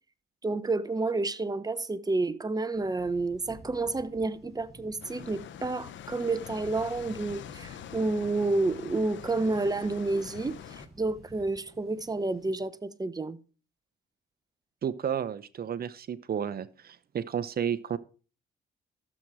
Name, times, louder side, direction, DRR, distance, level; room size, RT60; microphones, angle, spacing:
voice 1, 0.4-13.4, right 3 dB, 20° right, 1.0 m, -30 dB
Thunder, 2.7-12.6, right 2 dB, ahead, 7.8 m, -55 dB
sound 1, 5.0-10.9, left 10 dB, 70° left, 1.0 m, -44 dB
voice 2, 14.8-18.0, right 8 dB, 50° right, 0.9 m, -32 dB
12.5 x 7.6 x 4.9 m
cardioid pair, 90°, 20 cm